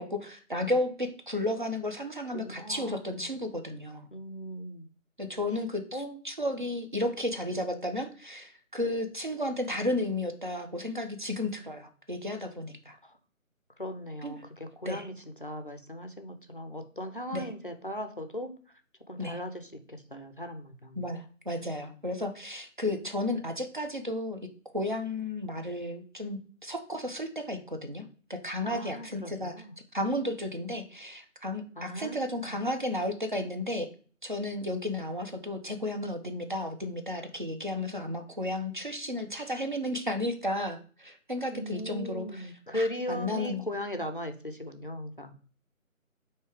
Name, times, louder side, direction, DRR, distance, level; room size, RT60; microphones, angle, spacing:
voice 1, 0.0-4.1 5.2-13.0 14.2-14.3 14.9-15.1 17.3-17.5 19.2-19.4 21.0-24.4 24.7-28.0 28.3-29.5 29.9-33.9 34.2-43.6, left 1 dB, 40° right, 6 dB, 0.5 m, -33 dB
voice 2, 2.3-3.2 4.1-4.9 5.9-6.2 13.0-13.2 13.8-18.5 19.1-21.1 22.9-23.4 28.6-29.7 31.7-32.6 41.5-45.3, equal, 40° left, 7 dB, 0.4 m, -38 dB
4.8 x 2.7 x 3.4 m, 0.41 s
figure-of-eight pair, 160°, 41 cm